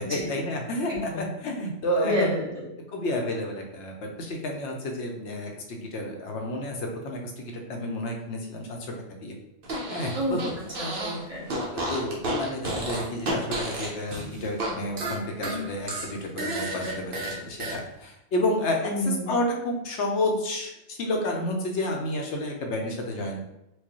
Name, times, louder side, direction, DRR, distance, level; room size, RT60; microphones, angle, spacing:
voice 1, 0.0-2.3 2.9-9.3 9.9-10.4 11.7-23.4, left 1 dB, 65° left, 1 dB, 0.9 m, -30 dB
voice 2, 0.9-1.2 2.0-2.7 10.1-10.4 10.8-11.4 18.8-19.3, equal, 20° right, -7 dB, 1.1 m, -29 dB
Fart, 9.6-11.2 11.5-14.7 15.0-17.8, right 1 dB, 50° right, 0.9 m, -31 dB
4.6 x 2.2 x 2.9 m, 0.86 s
omnidirectional pair, 1.3 m